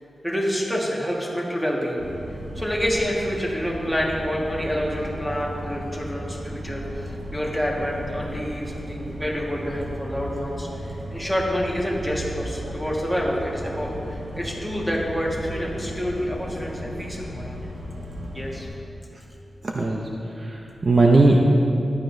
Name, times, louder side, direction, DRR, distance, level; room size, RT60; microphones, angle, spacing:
voice 1, 0.2-2.0 2.5-17.6 18.3-18.7, equal, ahead, -3 dB, 1.5 m, -28 dB
sound 1, 2.0-18.7, equal, 70° right, 1.3 m, -35 dB
voice 2, 19.6-20.1 20.4-21.4, right 3 dB, 40° right, 0 dB, 0.6 m, -18 dB
14.0 x 11.0 x 2.6 m, 2.8 s
wide cardioid pair, 150°, 0 cm